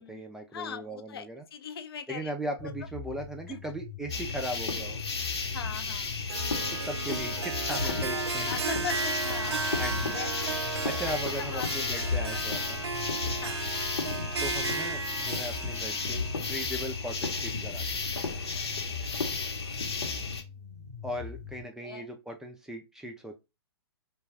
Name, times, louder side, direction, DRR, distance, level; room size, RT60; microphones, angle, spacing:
voice 1, 0.0-1.5 2.1-5.0 6.7-8.5 9.8-10.1 10.8-12.8 14.4-17.9 18.2-18.3 21.0-23.4, right 1 dB, 5° right, 0.3 m, -38 dB
voice 2, 0.5-2.3 3.5-3.6 5.5-6.2 7.8-9.8 10.1-10.3 10.7-10.8 11.4-11.7 12.3-12.4 13.4-13.7 18.5-19.3 21.8-22.1, left 8 dB, 65° left, 0.6 m, -40 dB
sound 1, 2.6-21.6, left 6 dB, 35° left, 0.9 m, -44 dB
sound 2, 4.1-20.4, left 4 dB, 85° left, 1.0 m, -33 dB
Harp, 6.3-17.5, right 5 dB, 80° right, 0.4 m, -35 dB
2.3 x 2.2 x 3.3 m
hypercardioid pair, 135°, 13 cm